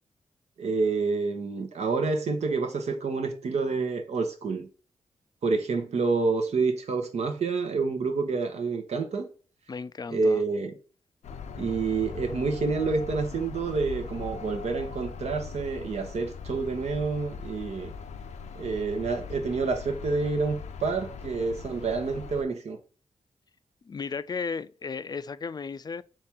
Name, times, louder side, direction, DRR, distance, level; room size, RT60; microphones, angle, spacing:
voice 1, 0.6-4.7 5.4-9.3 10.1-10.7 11.6-17.9 18.5-22.8, right 4 dB, 70° right, 0.9 m, -28 dB
voice 2, 9.7-10.4 23.8-26.0, left 5 dB, 35° left, 0.3 m, -34 dB
sound 1, 11.2-22.4, left 6 dB, 85° left, 0.5 m, -40 dB
4.2 x 3.2 x 3.5 m
cardioid pair, 65°, 12 cm